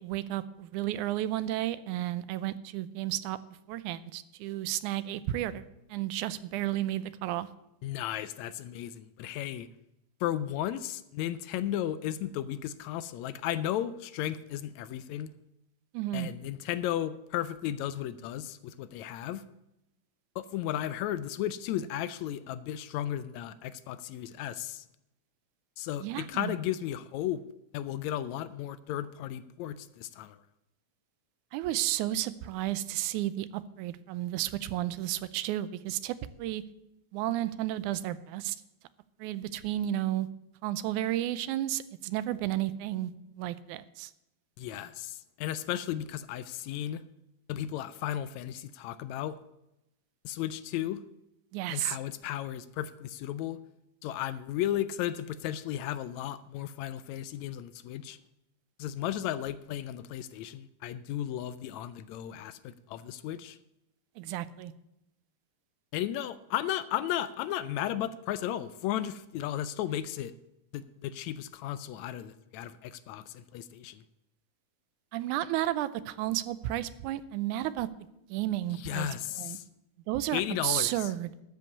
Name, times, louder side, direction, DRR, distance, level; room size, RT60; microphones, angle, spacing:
voice 1, 0.0-3.4 3.7-5.6 5.9-7.5 15.9-16.3 26.0-26.5 31.5-36.6 37.1-38.6 39.2-40.3 40.6-43.1 43.4-44.1 51.5-52.0 64.2-64.7 75.1-77.9 78.3-79.1 79.4-79.6 80.1-81.3, right 14 dB, 90° right, 16 dB, 2.1 m, -32 dB
voice 2, 7.8-9.7 10.2-15.3 16.1-19.4 20.4-24.8 25.8-27.4 27.7-30.4 44.6-47.0 47.5-49.4 50.3-51.0 51.7-53.6 54.0-58.2 58.8-63.6 65.9-70.3 70.7-74.0 78.8-79.6 80.3-81.0, left 11 dB, 80° left, 15 dB, 1.7 m, -34 dB
13.0 x 5.4 x 8.3 m, 0.87 s
omnidirectional pair, 3.4 m